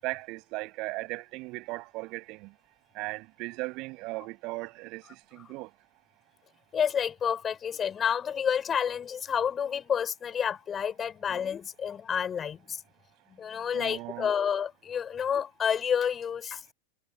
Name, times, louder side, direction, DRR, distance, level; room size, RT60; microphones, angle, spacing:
voice 1, 0.0-2.5 2.9-5.7 13.7-14.3, right 23 dB, 40° right, 7.5 m, -37 dB
voice 2, 6.7-12.8 13.3-16.7, left 8 dB, 20° left, 7.1 m, -29 dB
figure-of-eight pair, 90°, 0 cm